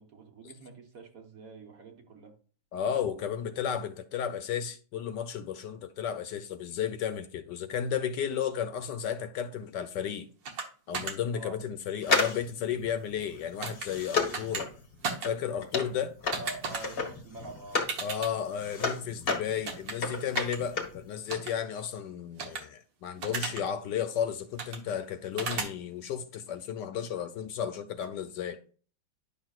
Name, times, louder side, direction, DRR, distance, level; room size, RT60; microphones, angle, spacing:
voice 1, 0.0-2.3 11.3-11.6 16.4-17.8, right 2 dB, 50° right, 1.4 m, -46 dB
voice 2, 2.7-10.3 10.9-14.7 15.2-16.2 18.0-28.6, left 8 dB, 70° left, 1.2 m, -33 dB
sound 1, 10.5-10.7 10.9-11.1 13.6-13.9 14.3-14.6 15.0-15.3 16.3-16.8 17.9-18.3 19.7-19.9 20.4-20.6 21.3-21.5 22.4-22.6 23.2-23.6 24.6-24.8 25.4-25.7, right 5 dB, 65° right, 1.9 m, -34 dB
sound 2, 12.0-18.0 18.3-21.0 21.3-21.4, left 4 dB, 35° left, 1.2 m, -32 dB
10.5 x 6.1 x 2.4 m
omnidirectional pair, 2.1 m